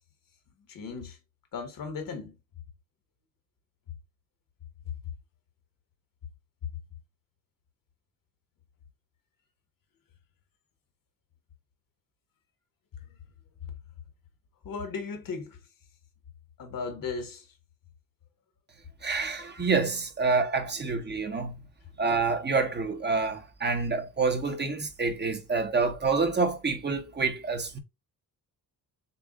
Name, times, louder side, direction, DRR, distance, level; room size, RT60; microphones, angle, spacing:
voice 1, 0.7-1.2 1.5-2.3 14.6-15.5 16.6-17.4, left 4 dB, 70° left, 1.3 m, -36 dB
voice 2, 19.0-21.5 22.0-27.8, right 4 dB, 30° right, 1.0 m, -27 dB
6.8 x 2.4 x 2.4 m
cardioid pair, 120°, 35 cm